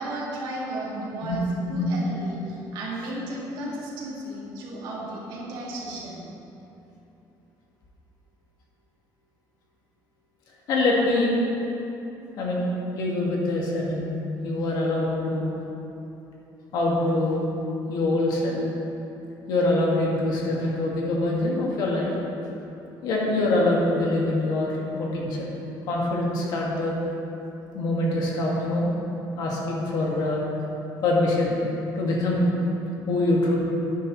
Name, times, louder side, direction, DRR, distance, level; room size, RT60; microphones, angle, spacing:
voice 1, 0.0-1.4 1.7-6.2, right 1 dB, 60° right, -4 dB, 1.9 m, -34 dB
voice 2, 10.7-11.3 12.4-12.7 12.9-15.5 16.7-17.4 17.9-18.6 19.5-22.1 23.0-25.5 25.9-27.0 27.7-28.9 29.4-30.4 31.0-31.6 31.9-32.5 33.1-33.6, left 2 dB, 55° left, -3 dB, 1.7 m, -24 dB
10.5 x 9.3 x 3.1 m, 3.0 s
cardioid pair, 175°, 8 cm